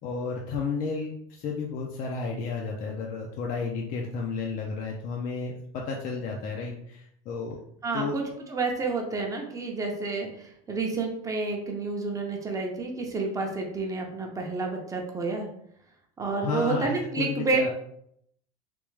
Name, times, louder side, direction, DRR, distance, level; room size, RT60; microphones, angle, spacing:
voice 1, 0.0-7.6 7.9-8.2 16.4-17.7, left 4 dB, 45° left, -1 dB, 0.6 m, -32 dB
voice 2, 7.8-8.2 8.5-15.5 16.2-17.7, right 3 dB, 15° right, 1 dB, 0.7 m, -29 dB
3.4 x 3.0 x 3.2 m, 0.72 s
supercardioid pair, 130°, 19 cm